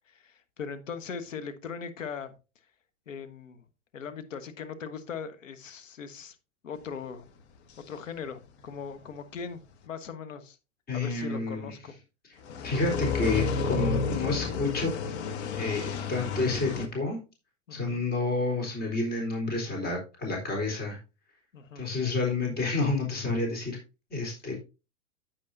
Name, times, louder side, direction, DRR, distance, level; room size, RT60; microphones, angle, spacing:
voice 1, 0.1-2.3 3.1-3.6 3.9-6.4 6.6-7.3 7.9-9.6 9.9-10.6 10.9-11.9 17.7-18.0 21.5-21.8, left 6 dB, 80° left, 10 dB, 1.5 m, -39 dB
voice 2, 10.9-11.7 12.6-14.9 15.6-17.2 17.7-21.0 21.8-23.8 24.1-24.5, left 3 dB, 25° left, 0 dB, 3.9 m, -29 dB
sound 1, 12.4-16.9, left 4 dB, 60° left, 1.6 m, -31 dB
10.0 x 8.5 x 2.6 m, 0.29 s
hypercardioid pair, 110°, 38 cm